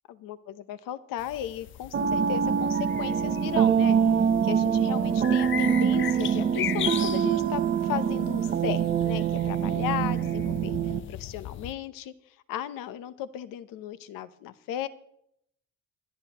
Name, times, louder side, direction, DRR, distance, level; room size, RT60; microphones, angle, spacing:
voice 1, 0.1-12.1 12.5-14.9, left 11 dB, 85° left, 14 dB, 0.9 m, -36 dB
sound 1, 1.2-11.7, left 11 dB, 40° left, 0.5 m, -38 dB
sound 2, 1.9-11.0, right 7 dB, 35° right, 0.8 m, -25 dB
24.0 x 10.0 x 3.0 m, 0.73 s
cardioid pair, 165°, 32 cm